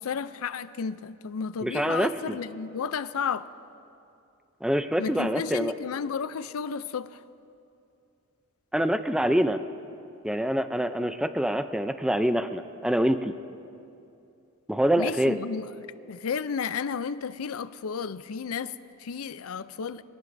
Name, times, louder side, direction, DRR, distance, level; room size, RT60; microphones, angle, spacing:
voice 1, 0.0-3.5 5.0-7.2 15.0-20.0, left 6 dB, 90° left, 0.5 m, -33 dB
voice 2, 1.6-2.4 4.6-5.7 8.7-9.6 10.2-13.3 14.7-15.4, equal, 5° right, 0.5 m, -25 dB
24.0 x 18.0 x 2.6 m
head